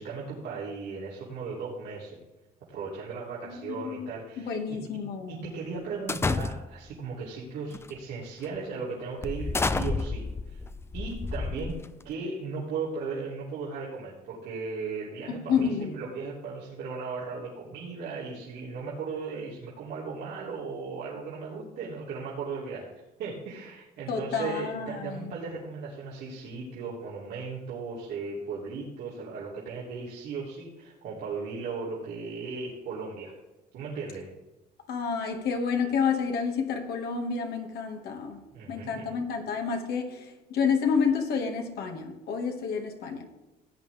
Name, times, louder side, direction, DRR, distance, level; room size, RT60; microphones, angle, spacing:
voice 1, 0.0-2.2 2.7-4.8 5.3-10.6 10.9-11.8 12.0-22.9 23.2-33.3 33.7-34.3 38.5-39.1, right 4 dB, 80° right, 3.0 m, -37 dB
voice 2, 3.4-5.5 15.3-15.9 24.1-25.3 34.9-38.4 38.7-43.2, left 6 dB, 70° left, 2.0 m, -29 dB
sound 1, 6.1-6.9 7.7-8.0 8.4-8.6 9.2-12.1, left 3 dB, 15° left, 0.4 m, -30 dB
16.0 x 8.9 x 3.5 m
cardioid pair, 110°, 17 cm